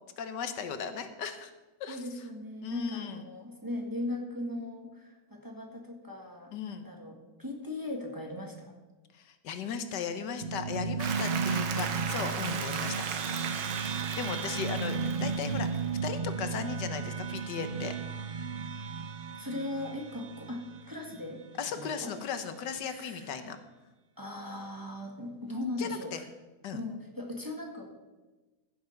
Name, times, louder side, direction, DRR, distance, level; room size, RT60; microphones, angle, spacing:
voice 1, 0.2-1.5 1.8-2.0 2.6-3.2 6.5-6.9 9.1-12.9 14.1-18.0 21.6-23.6 25.8-26.2 26.6-26.8, left 7 dB, 75° left, 9 dB, 1.5 m, -37 dB
voice 2, 1.9-8.8 19.3-21.4 21.7-22.1 22.8-23.5 24.2-26.3 26.7-27.9, left 1 dB, 10° right, 1 dB, 1.7 m, -38 dB
sound 1, 10.4-21.2, right 5 dB, 50° right, 0.6 m, -34 dB
Applause, 11.0-16.0, right 7 dB, 85° right, 1.7 m, -37 dB
15.5 x 7.1 x 5.8 m, 1.2 s
omnidirectional pair, 1.9 m